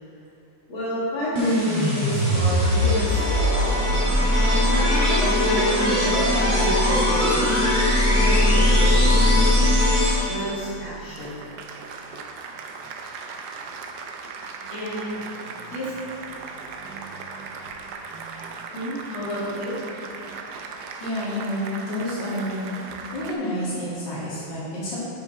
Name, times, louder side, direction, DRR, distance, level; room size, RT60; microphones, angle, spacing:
voice 1, 0.7-3.2 5.2-7.6 8.1-9.7 10.2-11.4 14.7-15.0 15.7-15.9 18.7-19.8, equal, 85° left, -10 dB, 2.9 m, -29 dB
sound 1, 1.3-10.5, left 1 dB, 25° right, 1.6 m, -20 dB
Applause, 3.4-23.3, right 5 dB, 70° right, 1.0 m, -37 dB
voice 2, 21.0-22.7 23.1-25.0, left 1 dB, 60° left, -8 dB, 2.7 m, -29 dB
6.7 x 6.0 x 4.4 m, 2.7 s
omnidirectional pair, 2.2 m